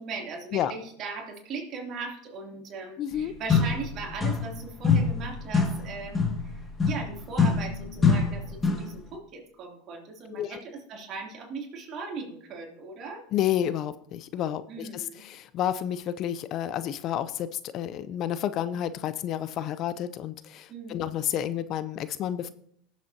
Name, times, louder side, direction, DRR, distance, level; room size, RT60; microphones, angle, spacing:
voice 1, 0.0-6.5 6.8-13.3 14.7-15.2 20.7-21.0, right 4 dB, 45° right, 0 dB, 2.9 m, -38 dB
voice 2, 3.0-3.3 10.3-10.6 13.3-22.5, left 11 dB, 50° left, 14 dB, 0.5 m, -30 dB
sound 1, 3.1-3.2 3.5-4.6 4.8-9.0, left 5 dB, 20° left, 1.8 m, -25 dB
18.5 x 7.3 x 2.8 m, 0.66 s
hypercardioid pair, 95°, 0 cm